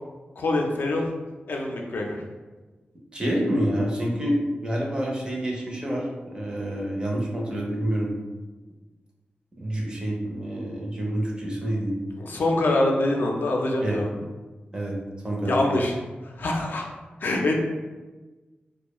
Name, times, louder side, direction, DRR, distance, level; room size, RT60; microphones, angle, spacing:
voice 1, 0.4-1.1 1.5-2.2 12.2-14.1 15.5-16.0 16.4-16.8 17.2-17.6, left 2 dB, 70° left, 0 dB, 0.4 m, -24 dB
voice 2, 3.1-8.1 9.6-12.0 13.8-14.0 14.7-15.0 15.2-15.6, right 1 dB, 25° right, -3 dB, 0.5 m, -27 dB
2.2 x 2.1 x 2.9 m, 1.2 s
wide cardioid pair, 130°, 4 cm